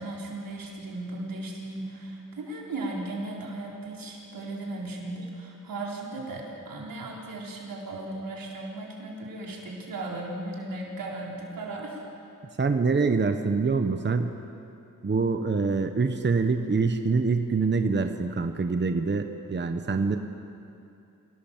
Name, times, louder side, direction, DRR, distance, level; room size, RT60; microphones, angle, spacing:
voice 1, 0.0-12.0, right 2 dB, 90° right, -2 dB, 4.3 m, -36 dB
voice 2, 12.6-14.3 15.0-20.2, right 4 dB, 30° right, 7 dB, 1.1 m, -25 dB
26.0 x 17.5 x 7.4 m, 2.6 s
wide cardioid pair, 90°, 33 cm